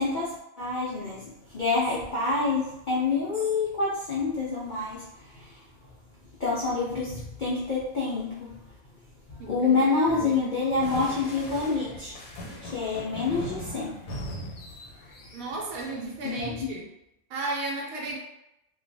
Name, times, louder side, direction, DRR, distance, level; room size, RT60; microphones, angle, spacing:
voice 1, 0.0-5.0 5.4-5.6 6.4-8.6 9.5-12.1 12.6-14.0 16.2-16.7, left 4 dB, 70° left, -6 dB, 0.4 m, -27 dB
voice 2, 9.4-10.5 15.3-16.8 17.3-18.2, right 2 dB, 85° right, 0 dB, 1.0 m, -34 dB
sound 1, 10.8-15.9, equal, 90° left, 1.1 m, -40 dB
2.4 x 2.2 x 2.5 m, 0.85 s
omnidirectional pair, 1.5 m